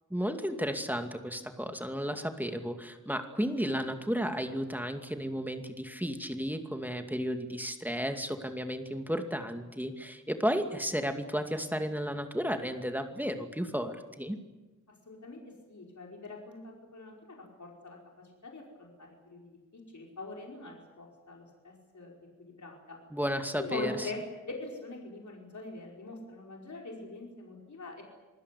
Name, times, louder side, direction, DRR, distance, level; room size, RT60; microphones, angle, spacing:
voice 1, 0.1-14.4 23.1-24.1, equal, 5° right, 5 dB, 2.3 m, -33 dB
voice 2, 15.1-15.4 15.7-22.1 22.5-23.0 23.6-28.0, left 2 dB, 70° left, -1 dB, 5.3 m, -43 dB
27.0 x 20.0 x 8.5 m, 1.2 s
wide cardioid pair, 90°, 30 cm